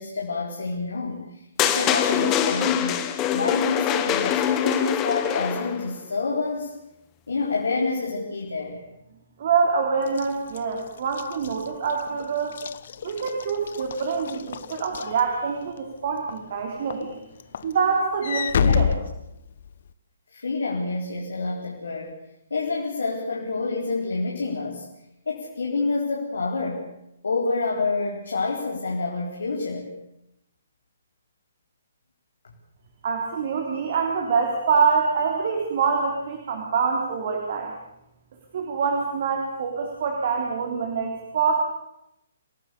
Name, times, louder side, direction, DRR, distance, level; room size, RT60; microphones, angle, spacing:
voice 1, 0.0-6.7 7.3-8.8 18.6-18.9 20.3-22.1 22.5-24.9 25.3-26.9 27.2-29.9, left 3 dB, 65° left, -1 dB, 4.1 m, -28 dB
sound 1, 1.6-5.8, left 10 dB, 20° left, 1.8 m, -24 dB
voice 2, 9.4-12.6 13.0-17.2 17.6-18.9 33.0-37.7 38.5-41.6, right 5 dB, 45° right, 2 dB, 3.8 m, -25 dB
Walk footsteps / Slam, 10.1-15.8 16.3-16.6 16.9-19.9, left 7 dB, 50° left, 1.1 m, -29 dB
28.5 x 18.0 x 7.0 m, 0.85 s
figure-of-eight pair, 130°, 0 cm